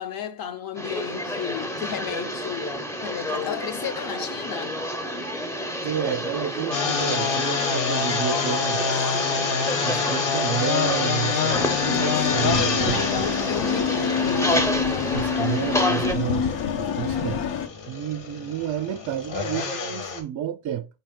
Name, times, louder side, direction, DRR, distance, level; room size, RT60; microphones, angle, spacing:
voice 1, 0.0-4.8 12.8-15.2, left 9 dB, 50° left, 0.6 m, -34 dB
sound 1, 0.8-16.2, left 1 dB, 5° left, 0.5 m, -29 dB
voice 2, 5.8-9.3 9.8-13.0 15.1-17.4 17.9-20.9, right 10 dB, 45° right, 0.4 m, -30 dB
Log cutting., 6.7-20.2, left 6 dB, 70° left, 1.2 m, -27 dB
sound 2, 11.5-17.7, left 6 dB, 90° left, 0.8 m, -26 dB
5.1 x 2.8 x 3.6 m
cardioid pair, 95°, 46 cm